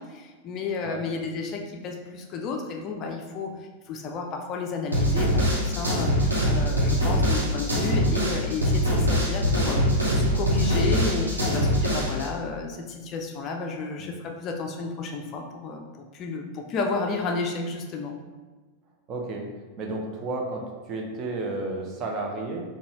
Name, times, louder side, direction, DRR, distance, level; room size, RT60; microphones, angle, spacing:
voice 1, 0.0-18.2, left 4 dB, 35° left, 3 dB, 0.4 m, -32 dB
sound 1, 4.9-12.3, equal, 80° right, 1.0 m, -23 dB
voice 2, 19.1-19.4 19.8-20.6 20.9-22.6, right 2 dB, 35° right, 1 dB, 0.6 m, -32 dB
3.9 x 2.3 x 2.9 m, 1.3 s
figure-of-eight pair, 90°, 0 cm